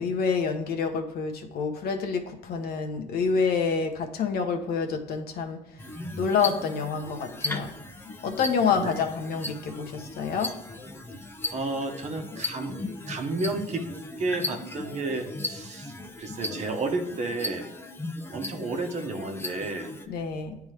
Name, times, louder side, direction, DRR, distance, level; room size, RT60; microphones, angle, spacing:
voice 1, 0.0-5.8 6.2-7.7 8.2-10.5 20.1-20.6, left 5 dB, 65° left, 4 dB, 1.1 m, -28 dB
sound 1, 5.8-20.1, left 2 dB, 15° left, 0.8 m, -37 dB
voice 2, 11.5-12.7 13.1-13.9 14.2-15.9 16.2-17.7 18.3-19.9, right 2 dB, 45° right, 4 dB, 1.2 m, -31 dB
10.0 x 3.6 x 3.3 m, 0.89 s
cardioid pair, 110°, 17 cm